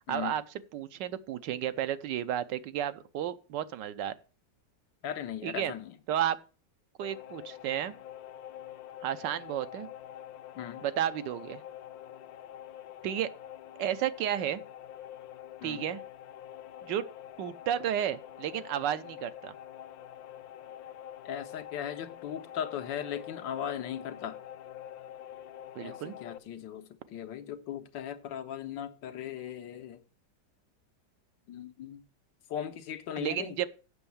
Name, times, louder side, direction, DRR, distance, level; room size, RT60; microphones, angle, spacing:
voice 1, 0.1-0.4 0.7-4.1 5.4-5.7 6.1-6.4 7.0-7.9 9.0-9.9 10.8-11.6 13.0-13.3 13.8-14.6 15.6-16.0 16.8-17.1 17.4-19.5 25.8-26.1 33.2-33.7, right 10 dB, 80° right, 1.3 m, -32 dB
voice 2, 5.0-5.9 10.6-10.8 15.6-15.9 21.2-24.4 25.8-30.0 31.5-32.0 32.5-33.6, left 9 dB, 85° left, 1.6 m, -38 dB
sound 1, 7.0-26.4, left 11 dB, 70° left, 1.0 m, -46 dB
7.9 x 6.2 x 7.0 m
omnidirectional pair, 1.9 m